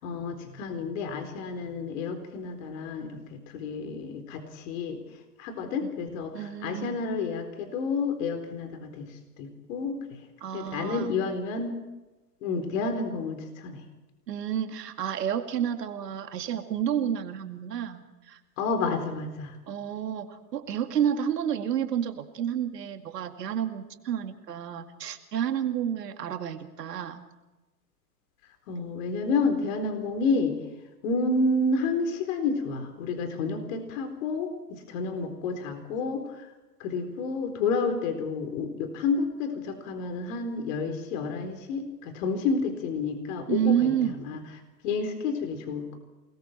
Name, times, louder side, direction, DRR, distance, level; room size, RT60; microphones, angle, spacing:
voice 1, 0.0-5.0 5.4-9.1 9.4-10.0 10.5-11.7 12.4-13.8 18.6-19.5 28.7-30.6 31.0-36.5 36.8-43.9 44.2-44.4 44.8-46.0, left 4 dB, 50° left, 6 dB, 4.1 m, -30 dB
voice 2, 6.3-7.1 10.4-11.2 14.3-18.4 19.7-27.2 43.5-44.2, right 9 dB, 75° right, 6 dB, 2.4 m, -30 dB
28.0 x 20.5 x 4.5 m, 1.1 s
hypercardioid pair, 125°, 49 cm